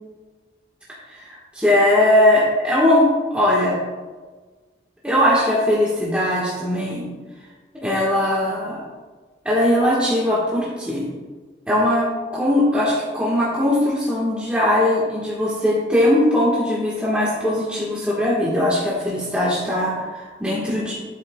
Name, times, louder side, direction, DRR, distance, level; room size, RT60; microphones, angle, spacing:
voice 1, 1.1-3.8 5.0-7.1 7.8-8.8 9.4-11.1 11.7-20.9, left 1 dB, 5° right, -7 dB, 1.5 m, -20 dB
11.5 x 8.1 x 2.3 m, 1.3 s
head